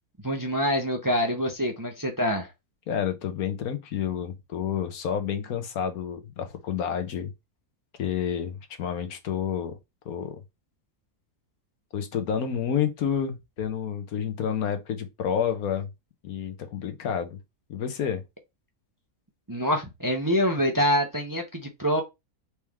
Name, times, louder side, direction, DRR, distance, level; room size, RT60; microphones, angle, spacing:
voice 1, 0.2-2.5 19.5-22.0, equal, 20° right, 0.6 m, -25 dB
voice 2, 2.9-7.3 8.0-9.7 10.0-10.4 11.9-15.9 16.2-17.4 17.7-18.2, left 8 dB, 85° left, 1.4 m, -29 dB
4.3 x 3.2 x 3.5 m
omnidirectional pair, 1.5 m